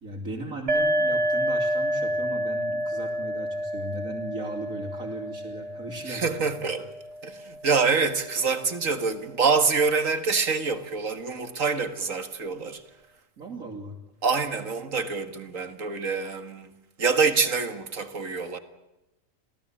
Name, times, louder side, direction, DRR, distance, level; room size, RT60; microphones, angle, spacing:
voice 1, 0.0-6.7 13.4-14.0, right 2 dB, 90° right, 3.5 m, -37 dB
sound 1, 0.7-8.2, equal, 55° right, 2.0 m, -29 dB
voice 2, 6.1-6.9 7.2-12.8 14.2-16.7 17.0-18.6, right 4 dB, 75° right, 2.3 m, -26 dB
27.0 x 17.0 x 8.7 m
omnidirectional pair, 1.4 m